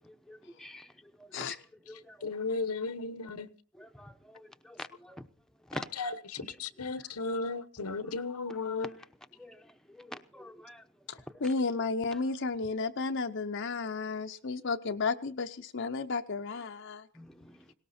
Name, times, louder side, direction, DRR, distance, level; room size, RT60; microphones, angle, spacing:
voice 1, 0.3-0.8 2.1-2.2 3.8-4.1 4.7-5.2 5.7-5.8 9.4-9.6 10.0-10.8 17.2-17.3, left 1 dB, ahead, 0.8 m, -44 dB
voice 2, 2.2-3.5 6.0-8.9, left 3 dB, 85° left, 1.1 m, -35 dB
voice 3, 11.1-17.1, left 4 dB, 55° left, 0.7 m, -33 dB
18.5 x 18.5 x 4.3 m
head